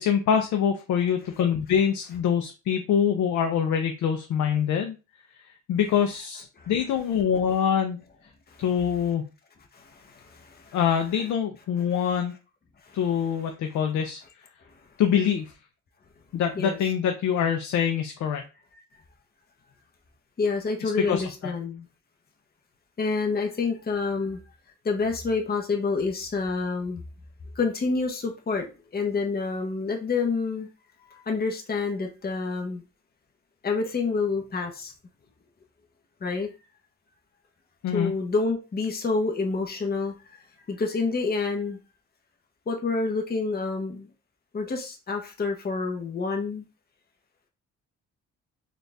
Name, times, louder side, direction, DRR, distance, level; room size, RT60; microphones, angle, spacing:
voice 1, 0.0-4.9 5.7-8.0 8.6-9.3 10.7-12.3 12.9-14.2 15.0-15.5 16.3-18.4 21.0-21.3 37.8-38.1, left 8 dB, 70° left, 5 dB, 0.6 m, -24 dB
voice 2, 5.8-6.2 6.6-7.1 8.5-9.0 9.7-11.2 11.9-12.1 12.8-13.4 16.5-16.8 18.7-18.8 20.4-21.9 23.0-24.4 24.8-27.0 27.5-28.7 28.9-30.7 31.1-32.8 33.6-34.9 36.2-36.5 37.9-40.1 40.7-41.8 42.7-44.1 44.5-46.6, left 4 dB, 30° left, 2 dB, 0.9 m, -28 dB
3.9 x 2.5 x 3.4 m, 0.31 s
cardioid pair, 90°, 30 cm